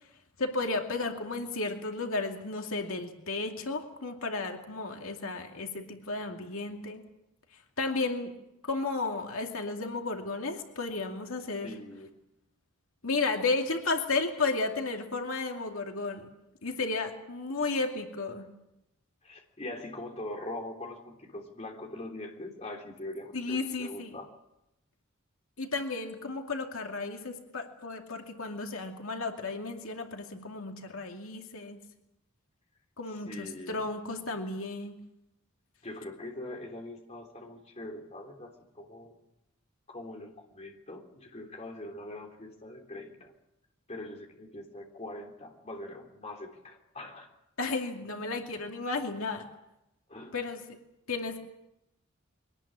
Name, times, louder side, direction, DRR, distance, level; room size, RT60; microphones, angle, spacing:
voice 1, 0.4-7.0 7.8-8.3 8.6-11.7 13.0-16.3 16.6-18.5 23.3-24.2 25.6-31.8 33.0-35.0 47.6-49.5 50.3-50.6 51.1-51.4, left 3 dB, 75° left, 3 dB, 2.4 m, -33 dB
voice 2, 11.6-12.1 18.4-18.5 19.2-24.3 33.3-33.8 35.8-39.1 39.9-43.3 43.9-47.3 50.1-50.4, left 1 dB, 30° left, 2 dB, 3.3 m, -42 dB
23.0 x 19.0 x 8.8 m, 0.88 s
head